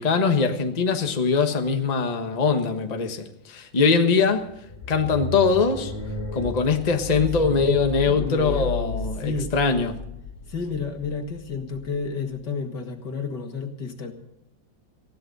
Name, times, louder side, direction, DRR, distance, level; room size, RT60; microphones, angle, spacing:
voice 1, 0.0-4.5 4.9-5.9 6.3-10.0, left 5 dB, 25° left, 1.2 m, -22 dB
sound 1, 4.3-12.4, left 4 dB, 45° left, 2.9 m, -34 dB
voice 2, 7.1-7.8 8.0-9.5 10.5-14.1, left 4 dB, 70° left, 2.5 m, -32 dB
20.0 x 16.0 x 4.1 m
omnidirectional pair, 2.0 m